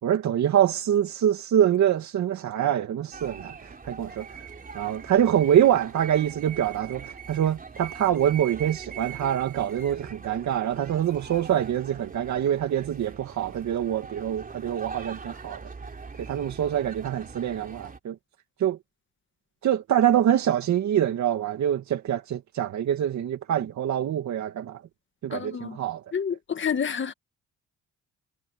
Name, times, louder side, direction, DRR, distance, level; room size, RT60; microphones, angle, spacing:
voice 1, 0.0-4.5 4.7-15.6 16.3-18.2 18.6-18.8 19.6-24.8 25.2-26.0, right 10 dB, 65° right, 2.3 m, -25 dB
sound 1, 3.1-18.0, right 5 dB, 30° right, 3.5 m, -42 dB
voice 2, 25.3-25.8 26.1-27.1, left 7 dB, 40° left, 1.7 m, -29 dB
cardioid pair, 90°, 30 cm